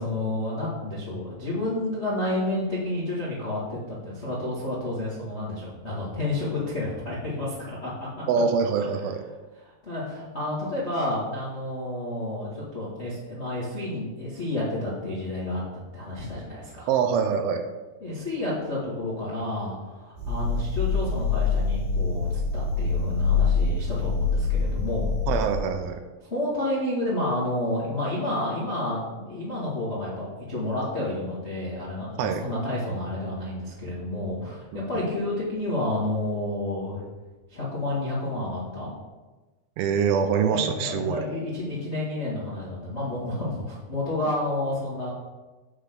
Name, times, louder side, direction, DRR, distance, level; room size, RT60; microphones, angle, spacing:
voice 1, 0.0-7.9 9.8-15.6 15.9-16.9 18.0-25.1 26.3-37.0 37.5-38.9 40.5-45.1, left 1 dB, 70° left, -8 dB, 0.6 m, -30 dB
voice 2, 8.3-9.2 16.9-17.6 25.3-26.0 32.2-32.4 34.7-34.8 39.8-41.2, right 6 dB, 85° right, 6 dB, 2.1 m, -24 dB
sound 1, 20.2-25.6, left 5 dB, 60° right, 3.5 m, -25 dB
9.4 x 3.9 x 6.6 m, 1.2 s
omnidirectional pair, 5.1 m